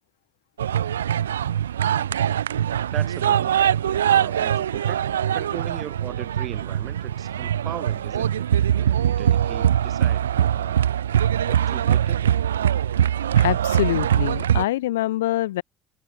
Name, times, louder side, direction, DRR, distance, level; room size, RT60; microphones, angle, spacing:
sound 1, 0.6-14.6, right 10 dB, 85° right, 0.6 m, -22 dB
voice 1, 2.9-3.7 4.1-5.1 5.3-10.9 11.5-12.3, right 11 dB, 50° right, 6.9 m, -38 dB
voice 2, 13.4-15.6, left 15 dB, 80° left, 0.4 m, -25 dB
hypercardioid pair, 60°, 0 cm